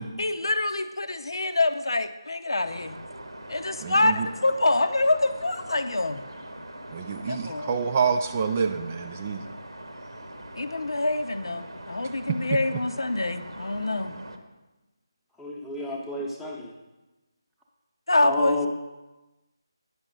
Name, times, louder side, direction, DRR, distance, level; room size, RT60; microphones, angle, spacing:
voice 1, 0.2-3.0 3.5-6.3 7.3-7.7 10.6-14.1 18.1-18.6, left 2 dB, 65° left, 10 dB, 0.6 m, -26 dB
sound 1, 2.6-14.4, right 1 dB, 70° right, 1.2 m, -42 dB
voice 2, 3.8-4.3 6.9-9.5, right 5 dB, 25° right, 7 dB, 0.4 m, -27 dB
voice 3, 15.4-16.7 18.2-18.7, left 2 dB, ahead, -5 dB, 0.9 m, -31 dB
9.6 x 6.0 x 5.3 m, 1.1 s
figure-of-eight pair, 155°, 3 cm